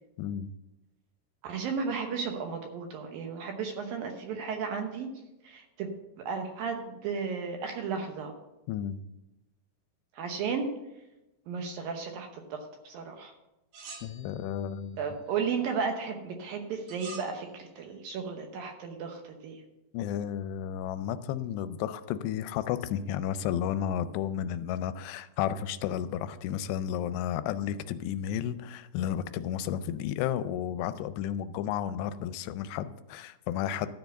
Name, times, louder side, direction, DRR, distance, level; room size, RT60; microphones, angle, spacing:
voice 1, 0.2-0.5 8.7-9.0 14.0-15.0 19.9-33.9, left 10 dB, 85° left, 13 dB, 2.6 m, -32 dB
voice 2, 1.4-5.1 5.4-5.9 6.2-8.3 10.2-10.7 11.5-13.3 15.0-19.6, right 5 dB, 70° right, 4 dB, 2.5 m, -34 dB
sound 1, 13.7-14.7 16.9-17.4, right 3 dB, 85° right, 4.1 m, -46 dB
13.0 x 4.6 x 7.8 m, 0.96 s
omnidirectional pair, 4.9 m